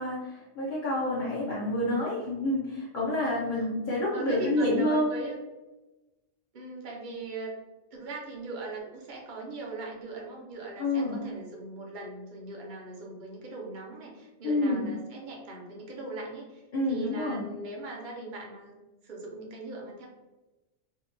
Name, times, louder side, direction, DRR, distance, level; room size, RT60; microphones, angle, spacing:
voice 1, 0.0-5.1 10.8-11.2 14.4-14.9 16.7-17.4, left 1 dB, 55° left, -7 dB, 0.5 m, -28 dB
voice 2, 3.4-3.7 4.1-5.4 6.5-7.5 7.9-16.6 16.9-18.7 19.0-20.1, right 2 dB, 55° right, -1 dB, 0.6 m, -40 dB
2.7 x 2.1 x 2.5 m, 1.1 s
omnidirectional pair, 1.4 m